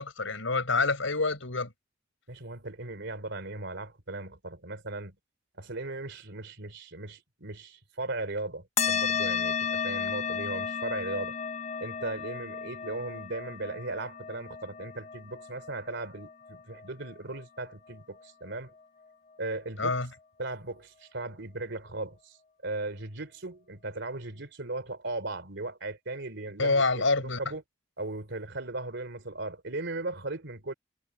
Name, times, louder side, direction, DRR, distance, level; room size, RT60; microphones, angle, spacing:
voice 1, 0.0-1.7 19.8-20.1 26.6-27.4, left 3 dB, 75° left, 6.2 m, -27 dB
voice 2, 2.3-5.2 5.6-11.4 11.8-18.7 19.4-19.9 20.4-22.4 22.6-27.6 28.0-30.7, right 2 dB, 65° right, 3.6 m, -37 dB
sound 1, 8.8-17.7, left 6 dB, 35° left, 1.1 m, -34 dB
head